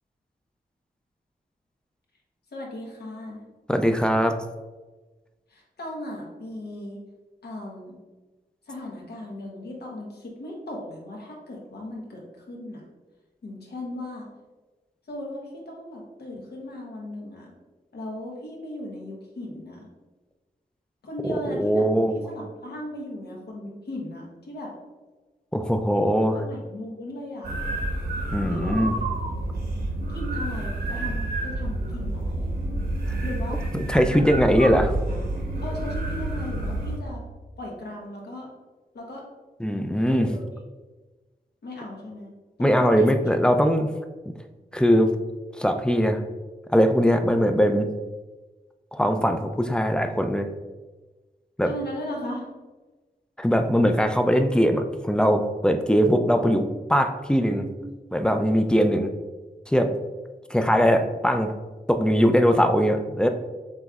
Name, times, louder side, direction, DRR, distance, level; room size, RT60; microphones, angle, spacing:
voice 1, 2.5-3.4 5.5-7.0 7.4-8.0 8.6-12.8 13.4-14.3 15.1-17.5 17.9-19.9 21.0-24.7 26.3-27.5 28.5-29.0 29.4-29.6 30.1-32.5 33.2-33.6 34.1-34.2 35.6-37.2 37.6-38.5 38.9-39.2 40.1-40.6 41.6-42.3 42.6-43.5 51.6-52.5 57.4-57.9, left 1 dB, 85° left, -2 dB, 1.1 m, -37 dB
voice 2, 3.7-4.4 21.3-22.1 25.5-26.4 28.3-28.9 33.9-34.9 39.6-40.3 42.6-43.9 44.7-45.1 45.6-46.2 46.7-47.9 48.9-50.5 51.6-51.7 53.4-57.6 58.1-59.1 59.7-59.9 60.5-61.6 61.9-63.3, equal, 5° left, 7 dB, 0.3 m, -21 dB
sound 1, 27.4-37.0, right 2 dB, 80° right, 1.1 m, -29 dB
7.5 x 3.0 x 2.4 m, 1.2 s
wide cardioid pair, 135°, 16 cm